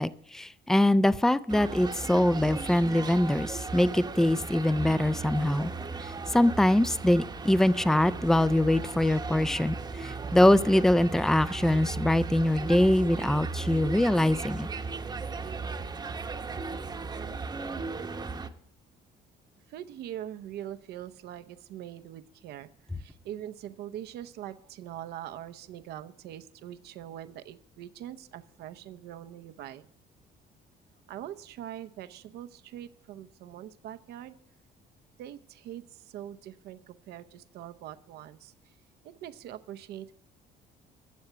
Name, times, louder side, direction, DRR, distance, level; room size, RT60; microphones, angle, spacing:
voice 1, 0.0-5.7 6.3-14.7, left 1 dB, 5° left, 16 dB, 0.4 m, -23 dB
sound 1, 1.5-18.5, right 4 dB, 25° right, 0.9 m, -36 dB
voice 2, 19.7-29.9 31.1-34.3 35.2-38.7 39.0-40.1, right 11 dB, 75° right, 11 dB, 0.7 m, -43 dB
12.5 x 7.2 x 6.7 m, 0.66 s
cardioid pair, 110°, 17 cm